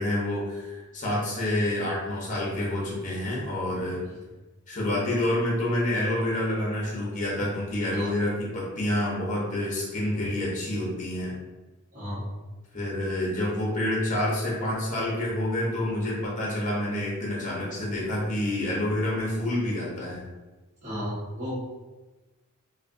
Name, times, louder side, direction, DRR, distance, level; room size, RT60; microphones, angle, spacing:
voice 1, 0.0-4.0 4.7-11.3 12.7-20.3, left 1 dB, 35° left, -4 dB, 1.0 m, -28 dB
voice 2, 20.8-21.5, equal, 35° right, -13 dB, 1.3 m, -34 dB
3.2 x 2.5 x 2.6 m, 1.2 s
head